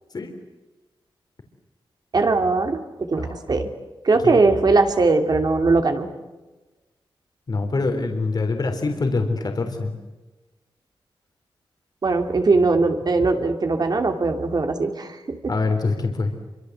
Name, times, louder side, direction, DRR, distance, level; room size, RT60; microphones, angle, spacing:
voice 1, 2.1-3.7 4.0-6.1 12.0-15.5, right 3 dB, 45° right, 5 dB, 2.8 m, -20 dB
voice 2, 7.5-9.9 15.5-16.3, left 3 dB, 45° left, 5 dB, 3.6 m, -24 dB
27.0 x 24.5 x 8.0 m, 1.2 s
wide cardioid pair, 110°, 9 cm